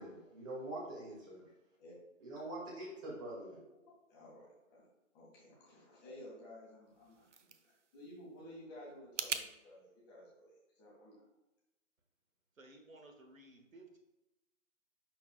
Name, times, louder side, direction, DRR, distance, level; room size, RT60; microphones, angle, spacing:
voice 1, 0.0-1.4 2.2-3.6, right 1 dB, 25° right, -5 dB, 2.2 m, -44 dB
voice 2, 3.5-4.9 5.1-11.2, left 1 dB, 20° left, -5 dB, 2.0 m, -55 dB
sound 1, 6.8-9.5, right 6 dB, 65° right, 0.7 m, -44 dB
voice 3, 12.6-14.0, right 2 dB, 85° right, 3 dB, 1.4 m, -57 dB
10.5 x 4.3 x 2.4 m, 0.97 s
figure-of-eight pair, 150°, 39 cm